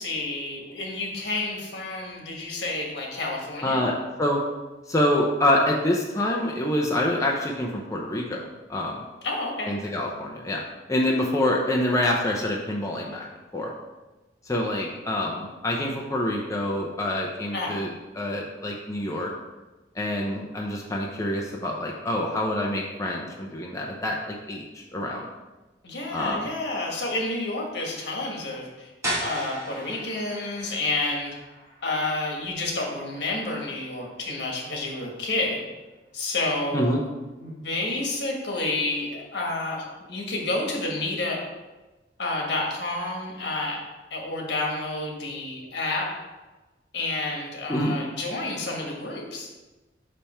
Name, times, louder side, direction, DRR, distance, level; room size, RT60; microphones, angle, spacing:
voice 1, 0.0-3.8 9.2-9.7 17.5-17.8 25.8-28.9 29.2-31.3 31.8-35.7 36.1-37.0 37.4-41.4 42.2-43.8 44.1-46.1 46.9-49.5, left 2 dB, 70° left, 0 dB, 1.5 m, -29 dB
voice 2, 3.6-3.9 4.2-4.4 4.9-8.4 8.7-9.1 9.7-10.6 10.9-13.3 13.5-13.7 14.5-17.9 18.2-19.3 19.9-25.3 26.1-26.5 36.7-37.0 47.7-48.0, left 1 dB, 20° left, -1 dB, 0.6 m, -26 dB
sound 1, 29.0-34.7, right 1 dB, 15° right, 1.9 m, -37 dB
5.6 x 5.2 x 4.4 m, 1.2 s
head